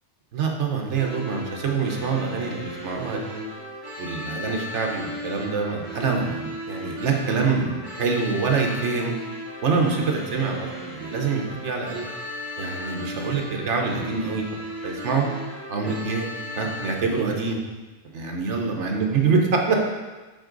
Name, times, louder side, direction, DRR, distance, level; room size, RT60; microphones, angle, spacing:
voice 1, 0.3-3.4 4.0-9.1 9.6-12.0 12.6-14.4 14.8-15.3 15.7-16.3 16.6-17.6 18.1-19.8, right 4 dB, 75° right, 1 dB, 1.3 m, -25 dB
sound 1, 0.9-16.9, left 1 dB, 45° right, 1.4 m, -36 dB
7.7 x 4.5 x 3.9 m, 1.2 s
omnidirectional pair, 1.2 m